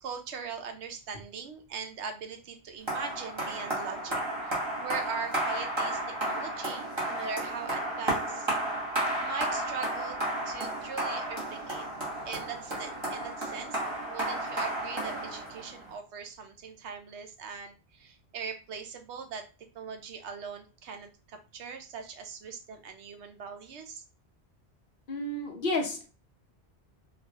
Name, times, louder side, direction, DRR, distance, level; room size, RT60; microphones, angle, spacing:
voice 1, 0.0-8.8 9.2-11.8 12.2-19.4 19.7-24.0, right 6 dB, 85° right, 6 dB, 1.0 m, -41 dB
sound 1, 2.9-15.9, right 1 dB, 25° right, 1.3 m, -33 dB
voice 2, 25.1-26.1, left 2 dB, 55° left, 2 dB, 0.9 m, -31 dB
3.8 x 2.5 x 2.8 m, 0.33 s
omnidirectional pair, 1.1 m